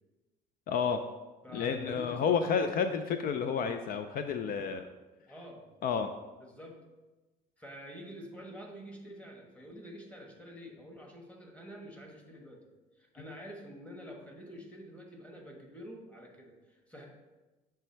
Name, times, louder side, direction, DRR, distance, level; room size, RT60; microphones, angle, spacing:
voice 1, 0.7-1.0 1.5-4.9 5.8-6.1, left 6 dB, 60° left, 8 dB, 0.4 m, -30 dB
voice 2, 1.4-2.9 5.3-5.7 6.4-6.8 7.6-12.6 13.0-17.0, equal, 10° left, 0 dB, 1.2 m, -48 dB
7.1 x 3.4 x 4.4 m, 1.2 s
cardioid pair, 110°, 17 cm